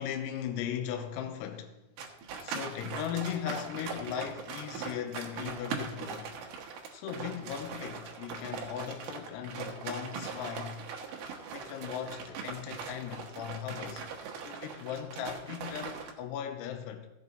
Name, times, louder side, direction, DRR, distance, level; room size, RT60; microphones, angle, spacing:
voice 1, 0.0-1.8 2.4-6.4 6.9-10.8 11.5-14.0 14.4-17.1, left 9 dB, 75° left, 2.7 m, -38 dB
sound 1, 2.0-16.1, right 5 dB, 75° right, 1.9 m, -40 dB
15.5 x 7.4 x 4.0 m
omnidirectional pair, 5.5 m